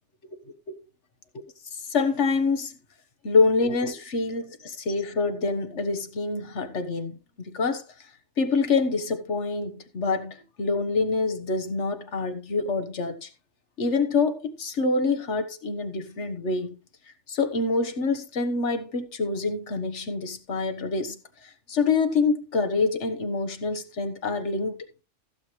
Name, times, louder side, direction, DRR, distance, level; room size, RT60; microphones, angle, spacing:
voice 1, 1.7-2.7 3.2-7.2 7.4-7.8 8.4-13.3 13.8-16.7 17.3-24.9, left 4 dB, 80° left, 1.6 m, -26 dB
15.5 x 7.7 x 3.2 m
omnidirectional pair, 1.2 m